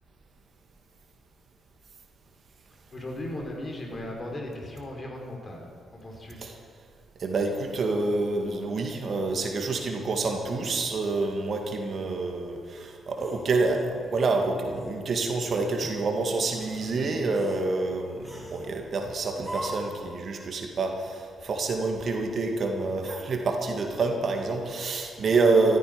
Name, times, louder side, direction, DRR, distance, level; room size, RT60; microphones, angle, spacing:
voice 1, 2.9-6.4, left 1 dB, 40° left, 0 dB, 4.0 m, -37 dB
voice 2, 7.2-25.8, right 3 dB, 55° right, 3 dB, 2.1 m, -27 dB
sound 1, 13.2-14.3 14.7-15.0 15.5-16.0 16.4-16.9 17.3-17.7 18.2-18.7 19.4-20.0, right 1 dB, 5° right, 4.1 m, -41 dB
15.0 x 13.0 x 5.2 m, 2.2 s
hypercardioid pair, 45°, 0 cm